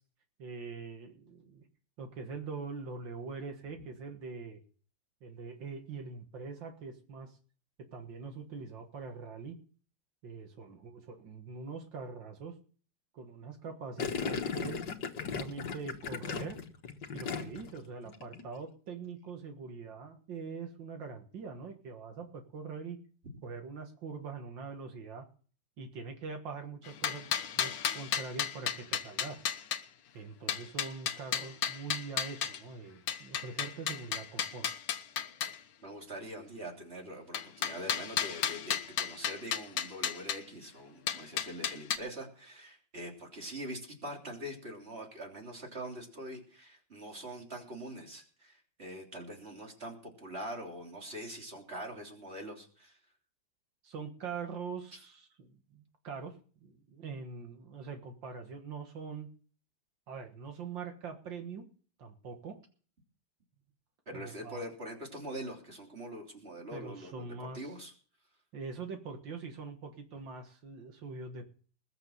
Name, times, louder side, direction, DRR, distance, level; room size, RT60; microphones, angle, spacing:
voice 1, 0.4-1.6 2.0-4.6 5.2-7.3 7.8-9.6 10.2-12.6 13.1-14.9 15.2-16.6 17.1-23.0 23.4-25.3 25.8-27.3 27.5-29.4 30.1-34.7 53.8-59.3 60.1-61.7 62.0-62.6 64.1-64.7 66.7-67.7 68.5-71.5, right 5 dB, 75° right, 5 dB, 2.4 m, -43 dB
Gurgling, 14.0-17.8 18.1-18.4, left 6 dB, 65° left, 1.9 m, -36 dB
sound 1, 26.8-29.8 30.5-32.6 33.1-35.6 37.3-40.4 41.1-42.0, left 9 dB, 80° left, 1.8 m, -33 dB
voice 2, 35.8-53.0 64.1-67.2 67.5-67.9, right 1 dB, 30° right, 1 dB, 3.5 m, -43 dB
20.5 x 7.0 x 7.3 m, 0.43 s
omnidirectional pair, 2.0 m